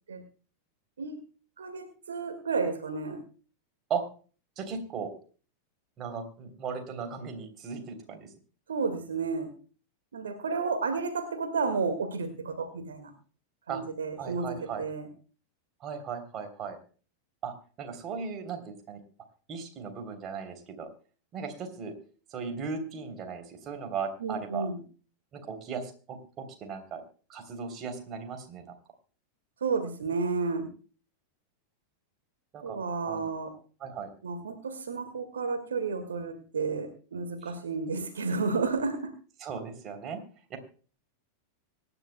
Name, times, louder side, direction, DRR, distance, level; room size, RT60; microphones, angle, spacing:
voice 1, 1.6-3.2 8.7-9.5 10.1-13.1 13.7-15.1 24.2-24.8 29.6-30.7 32.6-33.6 34.2-39.1, right 4 dB, 65° right, 8 dB, 1.8 m, -32 dB
voice 2, 4.6-5.1 6.0-8.3 13.7-13.8 14.2-14.8 15.8-16.8 17.4-19.0 19.5-20.9 21.3-21.9 22.3-24.7 25.3-27.0 27.3-28.6 32.5-32.8 33.1-33.2 33.8-34.1 39.4-40.2 40.5-40.6, right 6 dB, 30° right, 6 dB, 3.3 m, -37 dB
24.5 x 11.0 x 2.2 m, 0.38 s
figure-of-eight pair, 90°, 0 cm